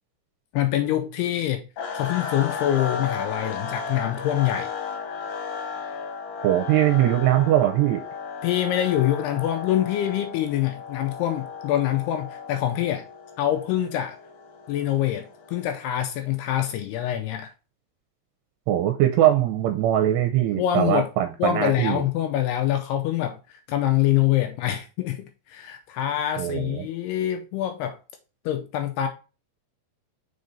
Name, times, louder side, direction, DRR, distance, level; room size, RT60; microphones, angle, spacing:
voice 1, 0.5-1.7 1.9-4.7 8.4-13.1 13.4-14.2 14.7-17.5 20.6-21.1 21.4-23.4 23.7-28.0 28.5-29.1, left 12 dB, 85° left, 2.5 m, -25 dB
sound 1, 1.8-15.9, left 6 dB, 60° left, 2.0 m, -35 dB
voice 2, 6.4-8.0 18.7-22.0 26.4-26.9, right 13 dB, 85° right, 2.7 m, -21 dB
6.6 x 4.1 x 4.1 m
omnidirectional pair, 5.0 m